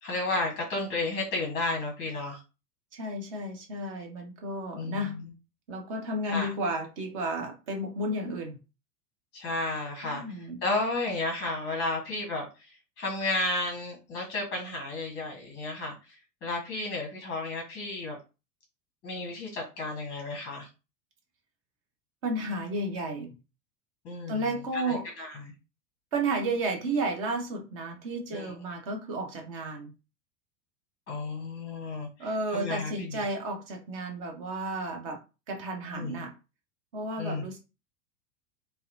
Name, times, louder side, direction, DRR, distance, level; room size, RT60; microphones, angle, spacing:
voice 1, 0.0-2.4 4.7-5.3 6.2-6.5 9.3-18.2 19.0-20.7 24.0-25.5 28.3-28.5 31.1-33.3 35.9-36.2 37.2-37.6, left 2 dB, 20° left, -1 dB, 0.8 m, -33 dB
voice 2, 2.9-5.2 5.7-8.6 10.0-10.6 22.2-23.4 24.3-25.1 26.1-29.9 32.2-35.2 35.5-36.3 36.9-37.6, right 1 dB, 25° right, 3 dB, 0.4 m, -32 dB
2.7 x 2.0 x 2.5 m, 0.29 s
figure-of-eight pair, 95°, 48 cm